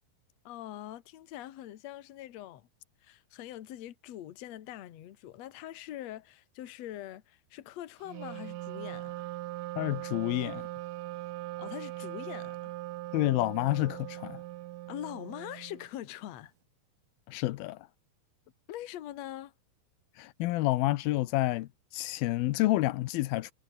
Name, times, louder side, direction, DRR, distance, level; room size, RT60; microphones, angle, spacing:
voice 1, 0.4-2.7 3.0-9.3 11.6-12.7 14.9-16.5 18.7-19.5, left 13 dB, 55° left, 2.2 m, -43 dB
Wind instrument woodwind instrument, 8.0-15.9, right 18 dB, 80° right, 2.1 m, -40 dB
voice 2, 9.8-10.7 13.1-14.4 17.3-17.9 20.2-23.5, left 17 dB, 85° left, 2.7 m, -29 dB
omnidirectional pair, 4.1 m